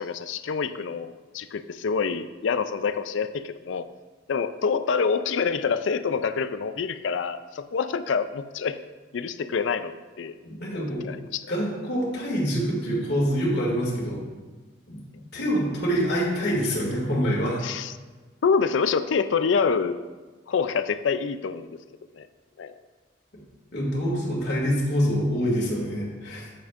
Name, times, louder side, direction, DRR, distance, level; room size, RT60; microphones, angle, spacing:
voice 1, 0.0-3.9 4.3-8.8 9.1-10.3 10.7-11.5 17.6-17.9 18.4-20.0 20.5-21.8 22.1-22.3 22.6-22.7, left 5 dB, 75° left, 12 dB, 0.4 m, -26 dB
voice 2, 10.4-11.1 11.5-14.2 14.9-15.0 15.3-17.6 23.7-26.5, equal, 60° left, -4 dB, 2.3 m, -26 dB
8.9 x 8.5 x 2.5 m, 1.3 s
head